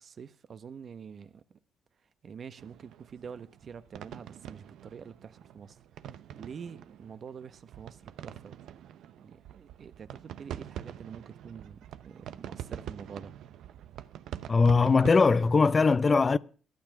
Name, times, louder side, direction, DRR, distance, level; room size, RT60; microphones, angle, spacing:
voice 1, 0.0-1.3 2.2-5.7 6.3-8.6 9.2-11.8 12.0-13.3, right 6 dB, 50° right, 0.9 m, -46 dB
sound 1, 2.6-15.6, right 11 dB, 80° right, 0.7 m, -45 dB
voice 2, 14.5-16.4, left 4 dB, 30° left, 0.5 m, -21 dB
12.5 x 12.0 x 5.9 m
cardioid pair, 90°, 0 cm